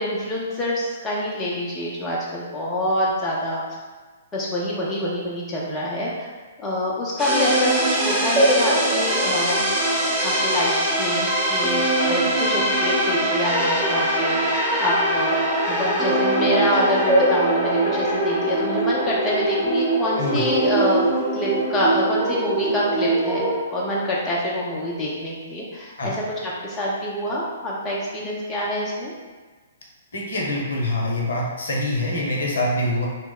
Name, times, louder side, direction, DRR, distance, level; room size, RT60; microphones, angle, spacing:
voice 1, 0.0-3.6 4.3-6.3 6.6-9.6 10.2-10.7 11.0-15.4 15.7-29.1, left 1 dB, 15° left, -5 dB, 0.5 m, -26 dB
sound 1, 7.2-23.6, right 1 dB, 15° right, 0.8 m, -22 dB
voice 2, 30.1-33.1, left 1 dB, 60° left, -2 dB, 0.7 m, -25 dB
2.8 x 2.1 x 3.6 m, 1.3 s
figure-of-eight pair, 120°, 0 cm